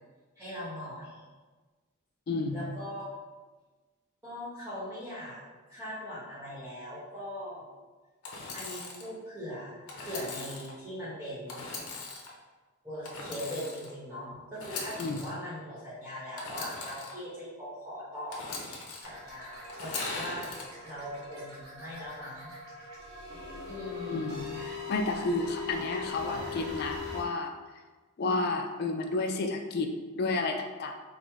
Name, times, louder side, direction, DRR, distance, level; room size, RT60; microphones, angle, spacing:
voice 1, 0.4-1.2 2.5-3.0 4.2-5.4 5.7-7.7 8.5-11.7 12.8-18.5 19.0-20.6 20.8-22.5 23.7-24.7 26.2-26.4, equal, 10° right, -11 dB, 1.0 m, -40 dB
voice 2, 2.3-2.7 15.0-15.3 24.1-27.5 28.2-30.9, left 3 dB, 45° left, 4 dB, 0.3 m, -31 dB
Engine / Sawing, 8.2-9.1 9.9-10.7 11.5-12.3 13.0-13.9 14.5-15.3 16.4-17.1 18.3-19.1 19.7-20.6, left 3 dB, 80° left, 0.7 m, -39 dB
sound 1, 19.0-27.2, left 4 dB, 80° right, 1.1 m, -41 dB
4.6 x 2.1 x 3.5 m, 1.3 s
head